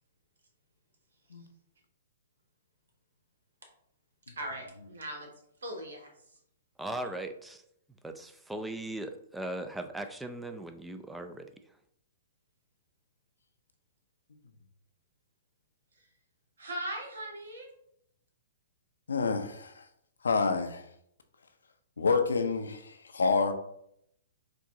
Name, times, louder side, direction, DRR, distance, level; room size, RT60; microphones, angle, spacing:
voice 1, 4.4-5.3 5.6-6.1 16.0-16.1 16.6-17.7, right 1 dB, 85° right, 2 dB, 1.4 m, -39 dB
voice 2, 6.8-7.6 8.0-11.5, right 1 dB, 5° right, 7 dB, 0.4 m, -38 dB
voice 3, 19.1-19.7 20.2-20.8 22.0-23.5, left 4 dB, 85° left, 8 dB, 0.6 m, -28 dB
4.7 x 2.6 x 3.7 m, 0.73 s
hypercardioid pair, 130°, 0 cm